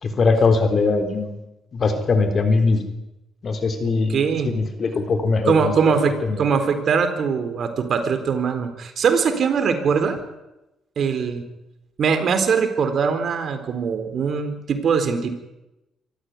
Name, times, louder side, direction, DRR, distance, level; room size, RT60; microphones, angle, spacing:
voice 1, 0.0-1.3 1.7-2.8 3.4-5.7 6.3-6.4, left 4 dB, 45° left, 8 dB, 3.8 m, -21 dB
voice 2, 3.8-4.5 5.5-6.1 6.4-10.2 11.0-11.4 12.0-15.3, right 6 dB, 55° right, 8 dB, 4.0 m, -21 dB
25.0 x 14.5 x 9.7 m, 0.94 s
cardioid pair, 90°, 0 cm